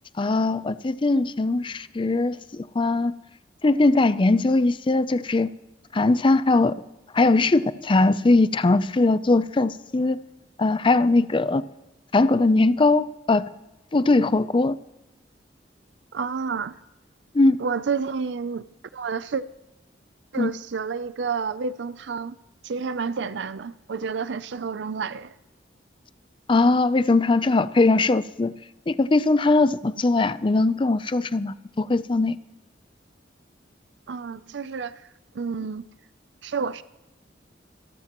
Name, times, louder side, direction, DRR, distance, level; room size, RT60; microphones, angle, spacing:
voice 1, 0.2-3.1 3.6-5.5 5.9-6.8 7.1-10.2 10.6-11.6 12.1-13.5 13.9-14.8 17.3-17.6 20.4-20.5 26.5-28.5 28.9-32.4, left 2 dB, 30° left, 15 dB, 0.5 m, -20 dB
voice 2, 16.1-16.7 17.6-18.6 18.9-19.4 20.3-22.4 22.6-25.3 34.1-34.9 35.3-35.9 36.4-36.8, right 5 dB, 70° right, 15 dB, 0.5 m, -29 dB
26.0 x 13.0 x 3.0 m, 0.97 s
head